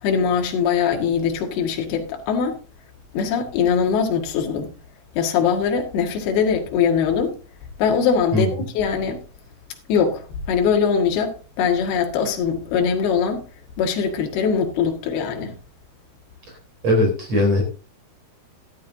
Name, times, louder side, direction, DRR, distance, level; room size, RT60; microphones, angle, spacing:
voice 1, 0.0-2.6 3.1-4.7 5.2-7.3 7.8-9.2 9.9-13.4 13.8-15.5, left 6 dB, 70° left, 3.6 m, -21 dB
voice 2, 16.8-17.6, left 1 dB, 40° right, 4.6 m, -19 dB
13.0 x 13.0 x 2.7 m
omnidirectional pair, 4.9 m